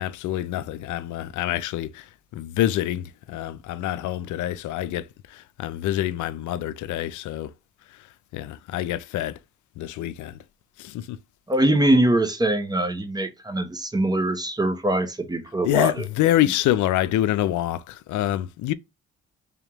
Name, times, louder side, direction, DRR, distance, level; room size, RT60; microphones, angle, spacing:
voice 1, 0.0-7.5 8.3-9.4 9.8-10.4 10.8-11.2 15.6-18.7, left 13 dB, 75° left, 0.4 m, -26 dB
voice 2, 11.5-16.0, right 1 dB, 15° right, 0.8 m, -22 dB
3.5 x 3.5 x 2.9 m
cardioid pair, 90°, 30 cm